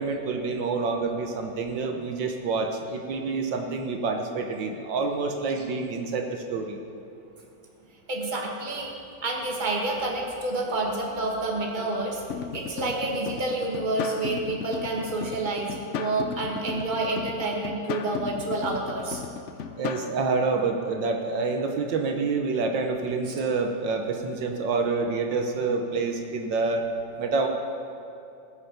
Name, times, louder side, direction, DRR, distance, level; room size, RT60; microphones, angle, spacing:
voice 1, 0.0-6.8 19.8-26.9 27.2-27.5, right 4 dB, 75° right, 3 dB, 1.6 m, -27 dB
voice 2, 8.1-8.9 9.2-12.2 12.5-19.2, right 2 dB, 25° right, -1 dB, 1.7 m, -29 dB
sound 1, 12.3-20.1, left 7 dB, 80° left, 0.6 m, -35 dB
20.0 x 6.7 x 5.8 m, 2.7 s
omnidirectional pair, 2.0 m